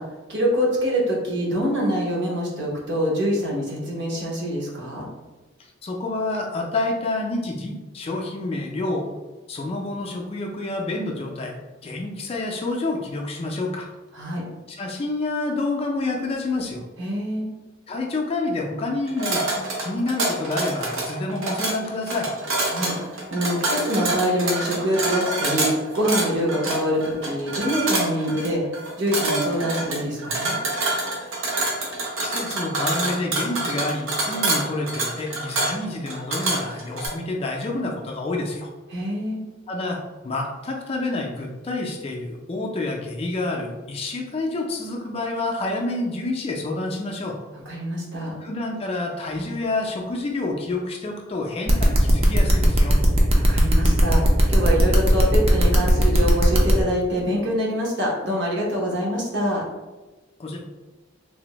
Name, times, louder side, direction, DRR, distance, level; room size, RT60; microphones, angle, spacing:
voice 1, 0.0-5.1 14.1-14.4 17.0-17.5 22.7-28.6 29.0-30.6 38.9-39.4 47.7-48.3 53.4-59.6, equal, 60° right, -3 dB, 0.8 m, -25 dB
voice 2, 5.8-9.1 9.5-11.5 11.8-13.9 14.7-16.8 17.9-22.3 32.2-38.7 39.7-47.4 48.4-53.0 60.4-60.6, left 2 dB, 30° left, 0 dB, 0.3 m, -28 dB
sound 1, 19.1-37.1, right 2 dB, 90° right, 0.7 m, -26 dB
sound 2, 51.7-56.7, equal, 30° right, 0.4 m, -19 dB
3.3 x 2.0 x 2.9 m, 1.2 s
head